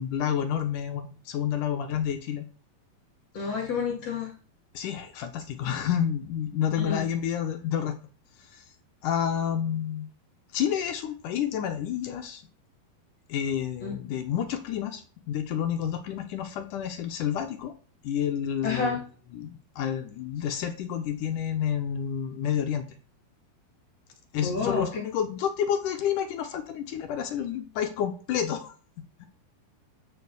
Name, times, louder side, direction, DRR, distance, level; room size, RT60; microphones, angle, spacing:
voice 1, 0.0-2.4 4.7-8.0 8.5-8.6 9.0-10.1 10.5-12.4 13.3-15.0 15.3-17.7 18.0-19.0 19.3-22.8 24.3-28.7 29.2-29.3, left 9 dB, 65° left, 7 dB, 2.3 m, -29 dB
voice 2, 3.3-4.3 6.8-7.0 13.8-13.9 18.6-19.0 24.4-25.0, left 5 dB, 45° left, 1 dB, 3.4 m, -29 dB
13.0 x 5.4 x 7.1 m, 0.39 s
omnidirectional pair, 4.5 m